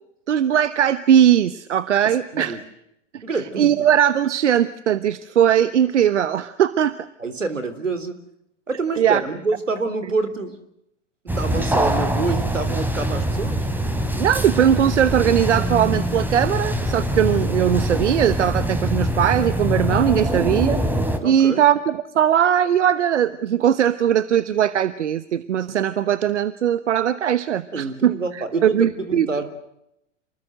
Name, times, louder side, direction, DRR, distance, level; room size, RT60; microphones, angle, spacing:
voice 1, 0.3-2.6 3.1-3.2 3.6-7.0 9.0-9.2 14.2-20.8 21.2-29.3, right 9 dB, 70° right, 15 dB, 1.2 m, -19 dB
voice 2, 2.0-2.6 3.2-3.7 7.2-8.2 8.7-10.6 11.2-13.7 21.2-21.6 27.7-29.5, right 3 dB, 85° right, 12 dB, 3.6 m, -27 dB
sound 1, 11.3-21.2, equal, 5° right, 3.1 m, -23 dB
29.0 x 20.5 x 7.8 m, 0.80 s
figure-of-eight pair, 95°, 37 cm